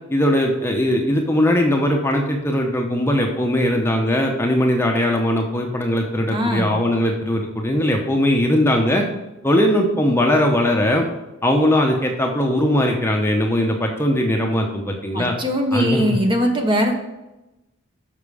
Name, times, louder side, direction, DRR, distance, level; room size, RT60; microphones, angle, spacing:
voice 1, 0.1-9.0 9.4-11.1 11.4-15.3 15.7-16.2, left 1 dB, 10° left, 1 dB, 0.8 m, -19 dB
voice 2, 6.3-6.8 15.1-16.9, equal, 25° right, 3 dB, 1.0 m, -20 dB
7.2 x 5.9 x 4.9 m, 0.97 s
head